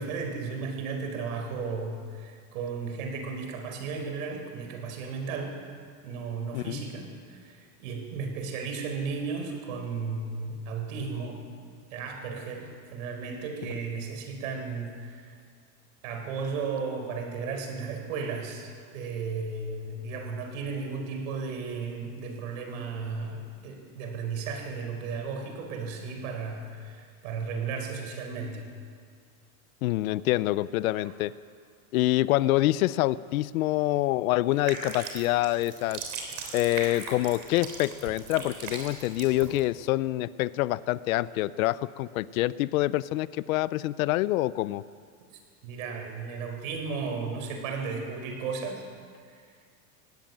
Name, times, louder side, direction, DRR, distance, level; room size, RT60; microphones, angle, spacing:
voice 1, 0.0-5.6 6.0-11.4 11.9-15.3 16.0-28.6 31.0-31.1 45.6-48.8 49.3-49.5, right 4 dB, 60° right, 4 dB, 4.9 m, -34 dB
voice 2, 29.8-31.3 31.9-36.0 36.5-44.8, left 16 dB, 65° left, 17 dB, 0.7 m, -26 dB
sound 1, 34.5-39.6, right 5 dB, 35° right, 3.6 m, -39 dB
19.0 x 16.5 x 9.4 m, 2.1 s
supercardioid pair, 170°, 46 cm